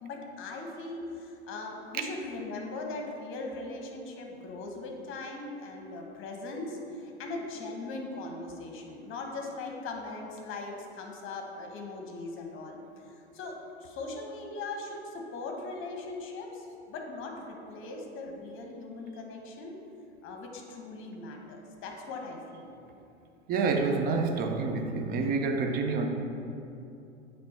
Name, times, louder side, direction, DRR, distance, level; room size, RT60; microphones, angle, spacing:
voice 1, 0.0-19.7 20.2-22.8, left 3 dB, 40° left, 2 dB, 1.0 m, -40 dB
voice 2, 23.5-26.1, right 4 dB, 25° right, 4 dB, 0.5 m, -28 dB
7.6 x 3.3 x 4.2 m, 2.7 s
hypercardioid pair, 100°, 33 cm